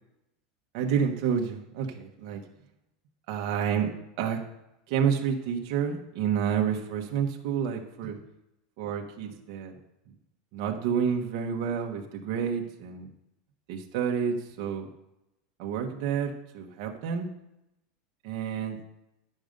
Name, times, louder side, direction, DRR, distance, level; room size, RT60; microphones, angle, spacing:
voice 1, 0.7-2.4 3.3-3.9 4.2-4.4 4.9-8.2 8.8-9.7 10.5-13.1 13.7-14.9 15.6-17.3 18.2-18.8, right 7 dB, 60° right, 1 dB, 1.3 m, -29 dB
10.5 x 6.5 x 5.2 m, 0.89 s
supercardioid pair, 145°, 3 cm